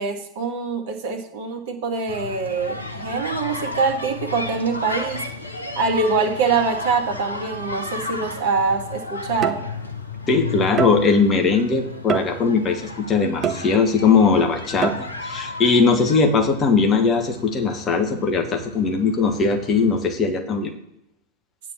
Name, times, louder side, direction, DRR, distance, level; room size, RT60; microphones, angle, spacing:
voice 1, 0.0-5.2 5.8-9.6, right 4 dB, 50° right, 3 dB, 2.0 m, -24 dB
sound 1, 2.1-20.0, left 3 dB, 80° left, 1.1 m, -33 dB
sound 2, 8.2-8.4 9.4-10.0 10.8-11.3 12.1-12.7 13.4-14.1 14.8-15.3, right 8 dB, 25° right, 0.8 m, -27 dB
voice 2, 10.3-14.9 15.2-20.7, left 4 dB, 25° left, 5 dB, 1.3 m, -19 dB
8.8 x 4.6 x 7.3 m, 0.85 s
figure-of-eight pair, 90°, 0 cm